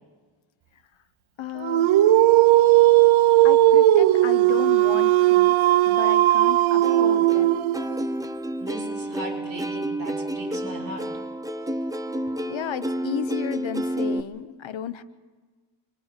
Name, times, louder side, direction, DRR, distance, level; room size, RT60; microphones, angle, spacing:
voice 1, 1.4-1.9 3.4-5.6 5.8-7.6 12.5-15.0, left 9 dB, 75° left, 13 dB, 1.0 m, -33 dB
Dog, 1.6-8.0, right 15 dB, 85° right, 0.7 m, -17 dB
voice 2, 2.5-3.7 8.6-11.1, right 1 dB, 50° right, -2 dB, 8.0 m, -39 dB
Plucked string instrument, 6.8-14.2, right 1 dB, 10° right, 1.0 m, -30 dB
29.0 x 24.5 x 4.2 m, 1.4 s
cardioid pair, 85°, 46 cm